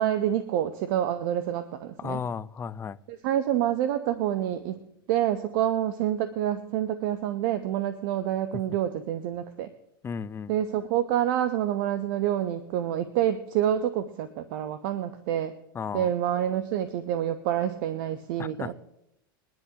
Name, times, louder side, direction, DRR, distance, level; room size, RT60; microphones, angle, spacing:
voice 1, 0.0-2.2 3.1-9.7 10.5-15.5 15.9-18.7, right 11 dB, 60° right, 11 dB, 0.9 m, -27 dB
voice 2, 2.0-3.0 10.0-10.5 15.8-16.1 18.4-18.7, left 6 dB, 20° left, 17 dB, 0.5 m, -34 dB
22.0 x 10.5 x 2.9 m, 0.80 s
hypercardioid pair, 100°, 12 cm